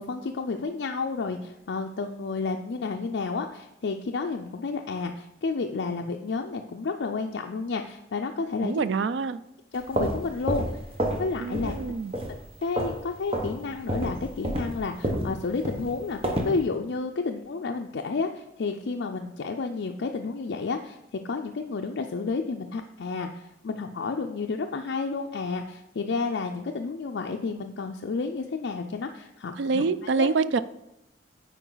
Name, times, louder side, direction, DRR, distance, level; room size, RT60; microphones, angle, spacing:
voice 1, 0.0-8.8 9.7-10.7 11.2-11.8 12.6-29.8 30.2-30.3, left 4 dB, 60° left, 3 dB, 0.4 m, -31 dB
voice 2, 8.6-9.4 11.4-12.1 29.6-30.6, right 4 dB, 65° right, 15 dB, 0.4 m, -26 dB
sound 1, 9.7-11.3 11.5-11.8 12.1-13.0 13.3-13.5 13.9-16.6, right 1 dB, 30° right, 1.0 m, -29 dB
9.1 x 4.5 x 3.9 m, 0.85 s
head